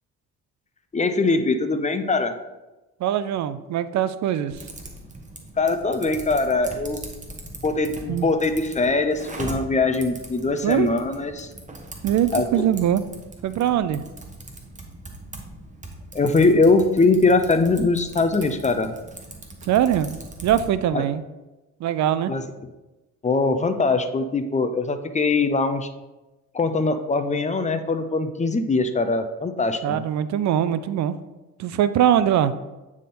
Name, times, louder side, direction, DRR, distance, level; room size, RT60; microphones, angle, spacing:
voice 1, 0.9-2.3 5.6-7.0 7.6-11.5 12.3-12.6 16.1-18.9 20.9-21.0 22.3-22.4 23.2-25.9 26.5-30.0, left 3 dB, 25° left, 8 dB, 0.6 m, -22 dB
voice 2, 3.0-4.6 8.1-8.3 10.6-10.9 12.0-13.0 13.4-14.0 19.6-21.2 21.8-22.3 29.8-31.2 31.6-32.5, right 10 dB, 65° right, 14 dB, 0.5 m, -22 dB
Typing, 4.5-20.7, right 2 dB, 25° right, 1.2 m, -40 dB
8.9 x 3.6 x 4.2 m, 1.1 s
cardioid pair, 90°, 30 cm